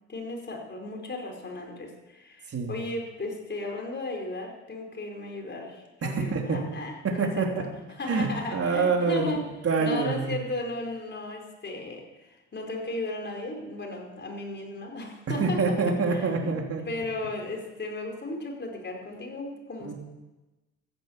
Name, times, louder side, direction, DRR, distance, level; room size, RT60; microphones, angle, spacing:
voice 1, 0.1-7.7 7.9-9.5 9.8-16.6 16.8-19.9, left 2 dB, 35° left, 1 dB, 4.9 m, -35 dB
voice 2, 6.0-6.6 7.0-7.6 8.1-10.4 15.4-16.8 19.8-19.9, right 4 dB, 50° right, 1 dB, 3.5 m, -26 dB
14.5 x 10.5 x 8.2 m, 1.1 s
cardioid pair, 90°, 30 cm